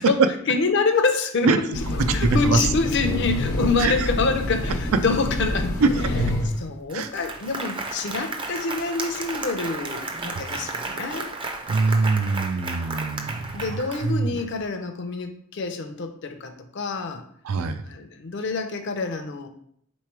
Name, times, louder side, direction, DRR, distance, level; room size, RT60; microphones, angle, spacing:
voice 1, 0.0-1.5 2.0-5.7 6.6-11.3 13.5-17.2 17.9-19.5, left 4 dB, 55° left, 7 dB, 0.6 m, -26 dB
Train, 1.7-6.7, left 1 dB, 85° left, 1.0 m, -26 dB
voice 2, 2.1-2.7 3.8-3.9 5.8-5.9 6.9-7.1 11.7-13.4 13.7-14.4 17.4-17.8, right 4 dB, 85° right, 9 dB, 0.4 m, -22 dB
Applause, 6.5-6.6 6.9-14.4, right 3 dB, 25° right, 0.4 m, -33 dB
3.7 x 3.1 x 4.5 m, 0.66 s
head